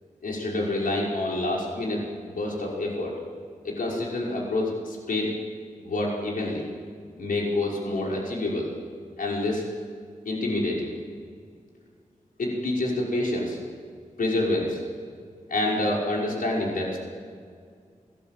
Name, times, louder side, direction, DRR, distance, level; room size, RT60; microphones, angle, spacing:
voice 1, 0.2-3.2 3.6-5.3 5.8-6.6 7.2-8.7 9.2-9.6 10.2-10.9 12.4-13.6 14.2-14.8 15.5-17.0, left 2 dB, 85° left, -3 dB, 5.7 m, -27 dB
28.0 x 20.5 x 7.7 m, 2.2 s
wide cardioid pair, 110°, 14 cm